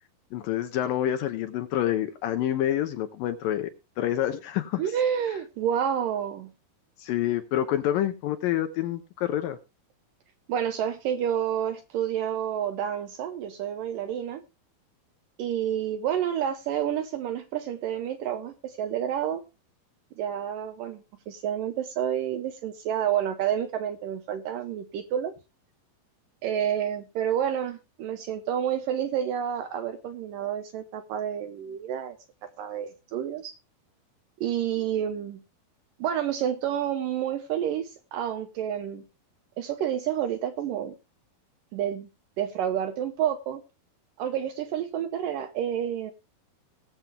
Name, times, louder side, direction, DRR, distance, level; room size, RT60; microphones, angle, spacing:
voice 1, 0.3-3.7 4.0-4.8 7.0-9.6, left 12 dB, 75° left, 2.3 m, -27 dB
voice 2, 4.8-6.5 10.5-14.4 15.4-19.5 20.2-25.3 26.4-32.2 32.6-33.6 34.4-35.4 36.0-39.0 39.6-40.9 41.7-42.1 42.4-43.6 44.2-46.1, right 9 dB, 75° right, 2.1 m, -29 dB
19.0 x 7.4 x 3.3 m
omnidirectional pair, 4.7 m